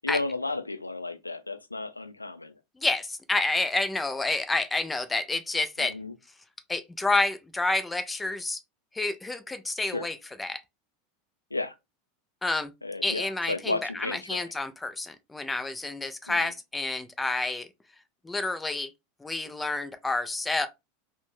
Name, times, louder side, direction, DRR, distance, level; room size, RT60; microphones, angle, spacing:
voice 1, 0.0-2.5 5.8-6.1 9.9-10.1 11.5-11.7 12.8-14.5 16.3-16.5, left 3 dB, 85° left, 0.3 m, -33 dB
voice 2, 2.8-6.0 6.7-8.6 8.9-10.6 12.4-12.7 13.0-17.7 18.2-18.9 19.2-20.7, left 2 dB, 10° left, 0.4 m, -29 dB
2.5 x 2.0 x 3.0 m
figure-of-eight pair, 85°, 0 cm